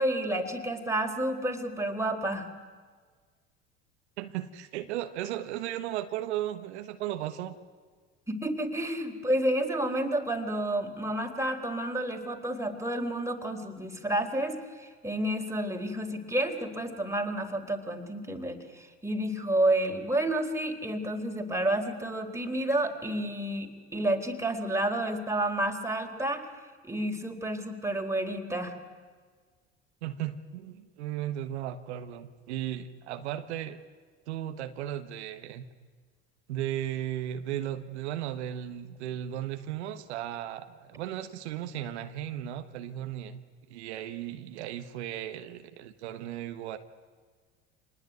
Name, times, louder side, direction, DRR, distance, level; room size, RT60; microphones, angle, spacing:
voice 1, 0.0-2.5 8.3-26.5 26.8-28.8, right 1 dB, 10° right, 3 dB, 3.9 m, -30 dB
voice 2, 4.2-7.6 30.0-33.8 34.3-35.6 36.5-43.4 43.7-46.8, right 12 dB, 85° right, 8 dB, 1.4 m, -36 dB
25.5 x 19.5 x 9.5 m, 1.5 s
hypercardioid pair, 80°, 33 cm